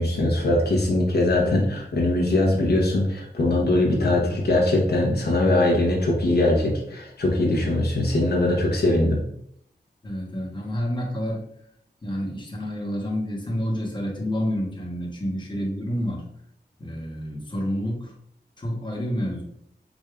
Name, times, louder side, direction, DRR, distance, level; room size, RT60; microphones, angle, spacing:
voice 1, 0.0-9.2, left 1 dB, 70° left, -2 dB, 0.8 m, -21 dB
voice 2, 10.0-11.4 12.0-16.2 16.8-18.1 18.6-19.4, equal, 25° left, -2 dB, 1.0 m, -29 dB
4.8 x 2.6 x 2.3 m, 0.70 s
wide cardioid pair, 80°, 17 cm